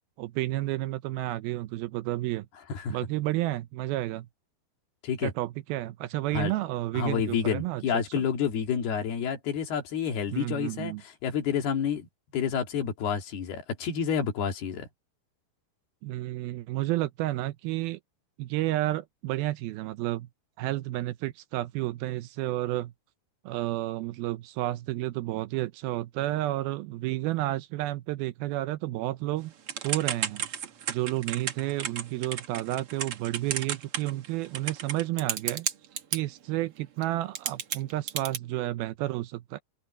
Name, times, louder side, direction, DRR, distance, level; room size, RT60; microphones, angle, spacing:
voice 1, 0.2-2.5 2.9-4.3 5.2-8.3 10.3-11.0 16.0-18.0 18.4-20.3 20.6-22.9 23.5-29.5 29.8-30.5 30.9-35.7 36.1-39.6, right 16 dB, 80° right, 2.4 m, -31 dB
voice 2, 6.9-12.1 12.3-14.9, left 7 dB, 75° left, 4.6 m, -29 dB
Typing / Telephone, 29.7-36.2 37.0-37.1 37.3-38.4, right 8 dB, 55° right, 1.6 m, -32 dB
omnidirectional pair, 4.6 m